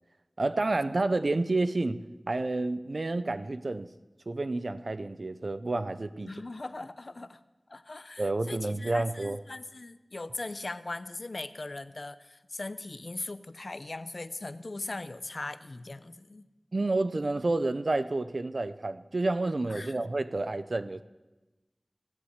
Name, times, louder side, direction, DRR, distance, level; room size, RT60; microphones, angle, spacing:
voice 1, 0.4-2.0 2.3-3.9 4.3-6.3 8.2-9.4 16.7-21.0, right 2 dB, 75° right, 13 dB, 0.6 m, -29 dB
voice 2, 6.3-7.4 7.7-16.5 19.7-20.1, left 2 dB, 70° left, 14 dB, 0.6 m, -40 dB
16.0 x 8.3 x 8.0 m, 1.1 s
wide cardioid pair, 40°, 0 cm